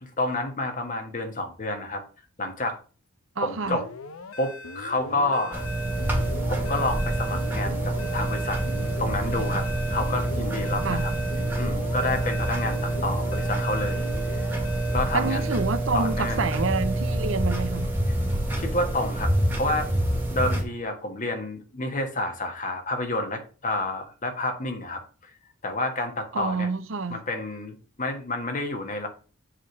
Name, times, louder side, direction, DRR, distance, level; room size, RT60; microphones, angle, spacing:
voice 1, 0.0-2.0 2.4-2.8 3.4-3.8 4.4-5.6 6.5-8.6 9.0-11.1 11.6-14.5 14.9-15.5 15.9-16.5 18.6-19.3 19.6-19.9 20.3-25.3 25.6-26.7 27.1-29.1, left 2 dB, 40° left, 1.5 m, -29 dB
voice 2, 3.4-3.8 10.8-11.0 15.1-17.9 26.3-27.2, right 4 dB, 65° right, 0.7 m, -28 dB
sound 1, 3.6-15.8, left 3 dB, 80° left, 0.8 m, -39 dB
sound 2, 5.5-20.6, right 1 dB, 10° right, 1.6 m, -27 dB
7.3 x 3.6 x 6.5 m
head